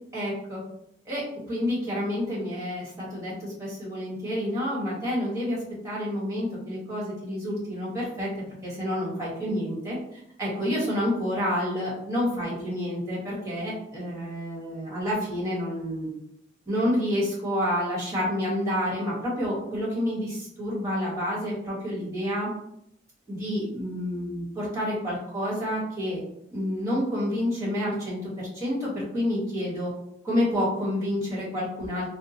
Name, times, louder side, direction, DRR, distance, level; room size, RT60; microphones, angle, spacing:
voice 1, 0.1-0.6 1.0-1.2 1.5-16.1 16.7-22.5 23.3-26.2 26.5-29.9 30.2-32.1, equal, 15° right, -7 dB, 1.4 m, -29 dB
3.6 x 2.1 x 2.8 m, 0.76 s
head